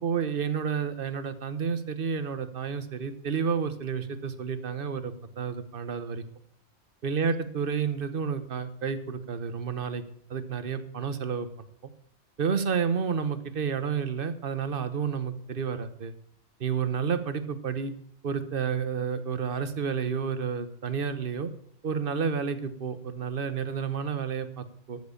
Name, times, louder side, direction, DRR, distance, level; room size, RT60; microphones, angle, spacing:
voice 1, 0.0-6.2 7.0-10.0 10.3-11.5 11.8-11.9 12.4-16.1 16.6-17.9 18.2-21.5 21.8-25.0, right 6 dB, 50° right, 11 dB, 1.1 m, -30 dB
13.5 x 6.3 x 7.0 m, 0.64 s
omnidirectional pair, 1.2 m